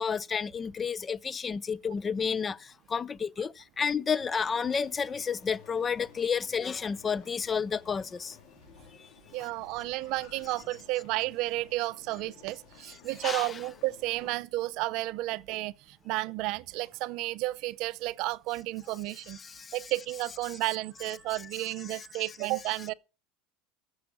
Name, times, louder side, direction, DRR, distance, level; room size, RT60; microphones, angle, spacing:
voice 1, 0.0-8.4 9.0-9.1 13.2-13.6 19.3-19.9 20.4-20.5 21.3-22.2, left 6 dB, 25° left, 0.5 m, -31 dB
sound 1, 4.1-14.3, left 7 dB, 55° left, 3.8 m, -55 dB
voice 2, 9.3-19.4 19.7-22.9, right 19 dB, 60° right, 0.5 m, -32 dB
14.0 x 6.3 x 6.0 m
supercardioid pair, 105°, 0 cm